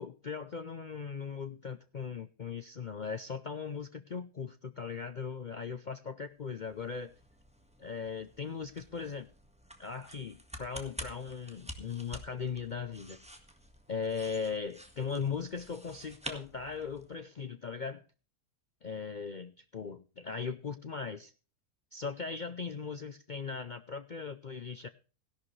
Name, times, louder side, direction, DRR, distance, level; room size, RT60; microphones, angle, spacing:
voice 1, 0.0-7.2 7.8-9.3 9.8-13.2 13.9-18.0 18.8-21.3 21.9-24.9, left 5 dB, 75° left, 10 dB, 0.4 m, -38 dB
sound 1, 6.4-17.2, equal, 5° right, 1.5 m, -49 dB
16.5 x 11.5 x 3.2 m, 0.36 s
omnidirectional pair, 1.7 m